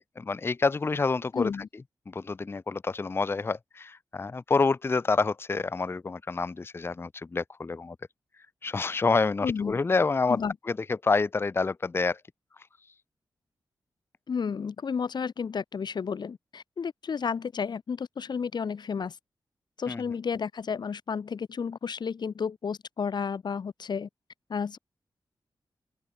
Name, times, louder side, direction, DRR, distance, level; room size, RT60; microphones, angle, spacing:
voice 1, 0.2-1.5 2.1-8.0 8.6-10.4 10.7-12.2 19.9-20.0, left 4 dB, 30° left, 0.5 m, -27 dB
voice 2, 1.3-1.7 9.4-9.8 10.3-10.5 14.3-19.2 19.8-24.1 24.5-24.8, left 6 dB, 65° left, 1.1 m, -32 dB
open air
cardioid pair, 60°, 8 cm